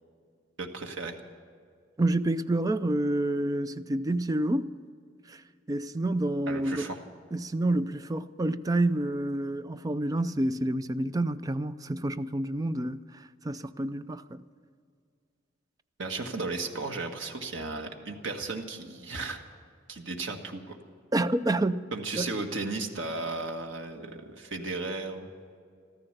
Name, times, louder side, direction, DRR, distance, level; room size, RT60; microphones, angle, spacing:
voice 1, 0.6-1.2 6.5-7.0 16.0-19.4 19.9-20.8 21.9-25.3, right 3 dB, 85° right, 1.6 m, -35 dB
voice 2, 2.0-4.7 5.3-5.4 5.7-6.9 7.3-14.4 21.1-21.9 22.2-22.3, right 1 dB, 20° right, 0.4 m, -28 dB
14.0 x 14.0 x 6.7 m
head